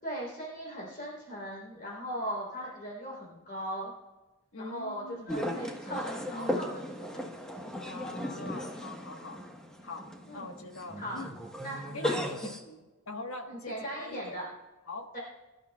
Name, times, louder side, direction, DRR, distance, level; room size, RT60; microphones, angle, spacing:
voice 1, 0.0-3.9 4.6-7.3 10.3-10.5 11.0-11.2 11.6-12.3 13.5-14.4 15.1-15.2, equal, 45° left, -3 dB, 3.5 m, -38 dB
voice 2, 4.5-5.4 7.8-9.4 9.8-10.1 10.3-11.3 11.9-14.4 14.9-15.1, left 2 dB, 80° left, 4 dB, 1.4 m, -43 dB
sound 1, 5.3-12.6, equal, 5° left, 1.2 m, -36 dB
24.0 x 11.5 x 2.3 m, 1.1 s
head